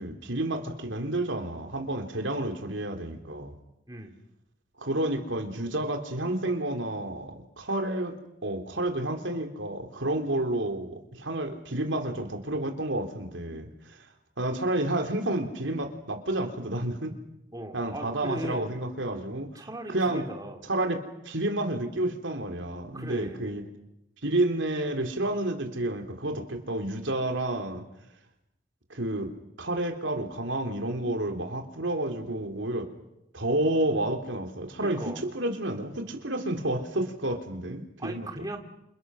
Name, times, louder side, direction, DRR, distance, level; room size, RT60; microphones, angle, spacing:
voice 1, 0.0-3.5 4.8-8.1 8.4-14.0 14.4-17.1 17.7-19.5 19.9-20.2 20.7-21.0 21.2-23.6 24.2-27.8 28.9-29.3 29.6-32.9 33.3-38.3, right 1 dB, 75° right, 4 dB, 3.4 m, -30 dB
voice 2, 17.5-18.8 19.5-20.6 22.9-23.4 34.8-35.2 38.0-38.6, right 1 dB, 20° right, 3 dB, 2.5 m, -37 dB
28.5 x 28.5 x 6.4 m, 0.84 s
head